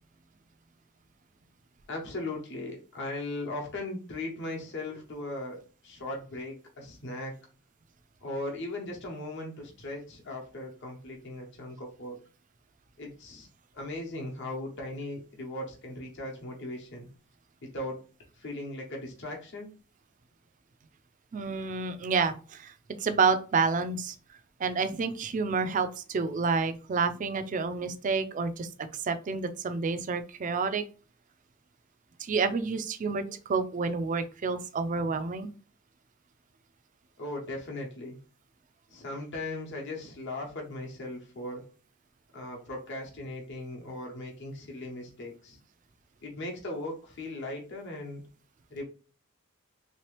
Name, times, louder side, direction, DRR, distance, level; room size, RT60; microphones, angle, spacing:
voice 1, 1.9-7.4 8.2-12.2 13.0-13.5 13.7-17.1 17.6-18.0 18.4-19.7 37.2-38.2 38.9-41.7 42.3-45.6 46.2-48.2 48.7-48.8, left 2 dB, 55° left, 0 dB, 0.9 m, -38 dB
voice 2, 21.3-24.1 24.6-30.8 32.2-35.5, right 4 dB, 40° right, 10 dB, 0.4 m, -29 dB
3.2 x 2.9 x 3.1 m, 0.37 s
head